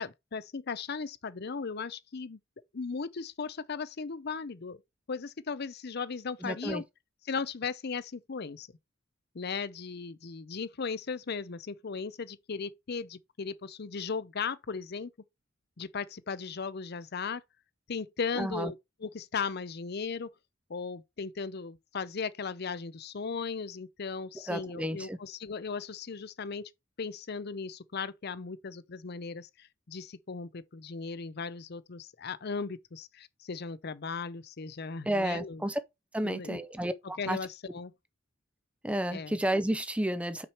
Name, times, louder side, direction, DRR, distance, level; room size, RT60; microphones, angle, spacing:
voice 1, 0.0-2.4 2.7-4.8 5.1-6.8 7.3-8.7 9.3-15.1 15.8-17.4 17.9-18.7 19.0-20.3 20.7-26.7 27.0-35.6 36.2-36.6 37.2-37.9 39.1-39.4, left 5 dB, 50° left, 0.6 m, -37 dB
voice 2, 6.4-6.8 18.4-18.7 24.5-25.2 35.0-35.8 36.1-37.4 38.8-40.5, right 1 dB, 5° right, 0.6 m, -31 dB
6.0 x 4.8 x 4.4 m
head